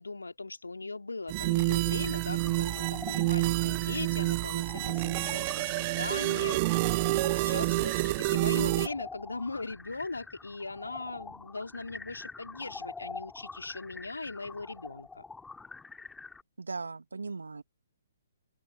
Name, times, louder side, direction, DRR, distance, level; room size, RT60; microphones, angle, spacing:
voice 1, 0.0-5.7 6.0-15.2, left 3 dB, 80° left, 3.2 m, -39 dB
sound 1, 1.3-8.9, right 23 dB, 35° right, 0.7 m, -28 dB
sound 2, 2.1-16.4, left 4 dB, 5° left, 3.1 m, -46 dB
voice 2, 16.6-17.6, right 4 dB, 75° right, 2.5 m, -38 dB
open air
figure-of-eight pair, 125°, 0 cm